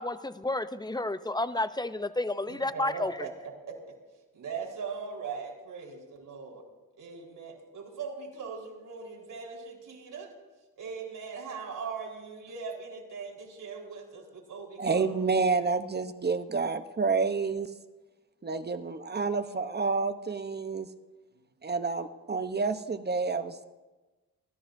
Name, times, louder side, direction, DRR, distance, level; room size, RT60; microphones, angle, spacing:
voice 1, 0.0-3.3, left 2 dB, 10° left, 12 dB, 0.7 m, -31 dB
voice 2, 2.5-3.3 3.7-3.8 4.3-6.7 7.0-10.3 10.8-15.3 21.3-21.4, right 5 dB, 65° right, -1 dB, 4.4 m, -40 dB
voice 3, 14.8-17.7 18.4-20.9 21.6-23.6, right 4 dB, 30° right, 9 dB, 0.9 m, -29 dB
28.5 x 14.0 x 2.7 m, 1.2 s
cardioid pair, 80°, 35 cm